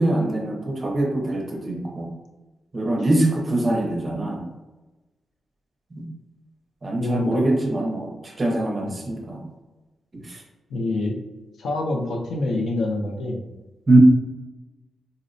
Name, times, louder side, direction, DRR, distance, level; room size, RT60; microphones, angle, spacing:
voice 1, 0.0-2.1 2.7-4.4 5.9-6.1 6.8-9.4 10.1-10.4 13.9-14.0, right 1 dB, 25° right, -1 dB, 0.6 m, -23 dB
voice 2, 7.0-7.4 8.8-9.0 10.7-11.2 11.6-13.4, left 2 dB, 85° left, 2 dB, 0.6 m, -26 dB
3.9 x 2.0 x 2.6 m, 1.1 s
wide cardioid pair, 175°, 0 cm